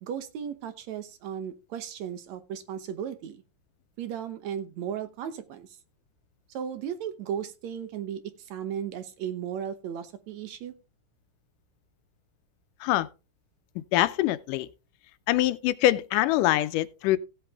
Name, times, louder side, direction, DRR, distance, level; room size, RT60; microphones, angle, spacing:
voice 1, 0.0-3.4 4.0-5.7 6.5-8.2 8.5-10.7, right 8 dB, 70° right, 2.1 m, -35 dB
voice 2, 13.8-14.7 15.3-17.2, left 15 dB, 85° left, 2.2 m, -24 dB
15.5 x 8.1 x 3.5 m
omnidirectional pair, 3.7 m